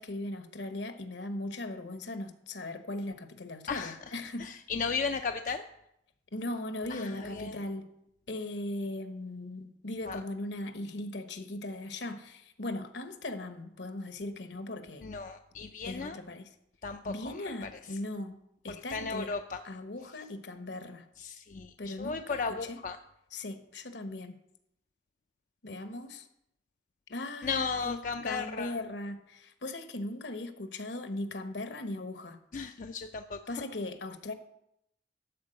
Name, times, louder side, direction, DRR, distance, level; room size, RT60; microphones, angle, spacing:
voice 1, 0.0-4.5 6.3-7.9 8.3-15.1 15.9-16.5 17.0-18.4 18.6-19.3 19.6-21.1 21.8-22.4 22.7-22.8 23.3-24.4 25.6-26.3 27.1-32.4 33.5-34.3, left 2 dB, 70° left, 8 dB, 1.1 m, -38 dB
voice 2, 3.7-4.0 4.4-5.6 6.9-7.6 10.1-10.2 15.0-16.2 16.8-17.7 18.7-19.6 21.2-23.0 27.4-28.7 32.5-33.6, left 5 dB, 45° left, 6 dB, 0.4 m, -35 dB
12.5 x 4.6 x 7.7 m, 0.80 s
head